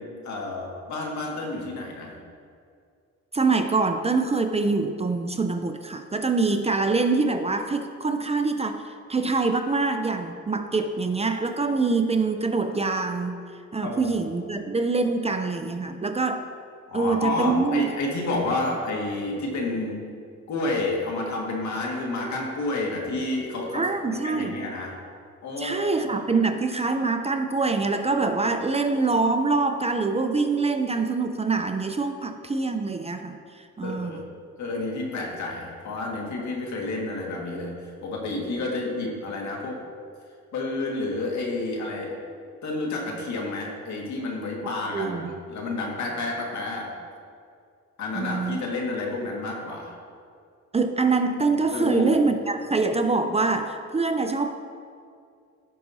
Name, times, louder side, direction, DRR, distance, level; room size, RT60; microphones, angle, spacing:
voice 1, 0.0-2.2 13.8-14.2 16.9-20.0 20.5-24.9 25.4-26.1 33.8-34.2 34.6-39.8 40.5-42.2 42.6-46.9 48.0-49.9 51.5-52.2, left 2 dB, 65° left, -1 dB, 1.9 m, -30 dB
voice 2, 3.3-13.5 13.7-16.5 16.9-17.8 23.7-24.6 25.6-34.2 44.9-45.3 48.1-48.6 50.7-54.6, right 3 dB, 20° right, 7 dB, 0.5 m, -25 dB
15.5 x 5.9 x 2.7 m, 2.3 s
cardioid pair, 90°, 30 cm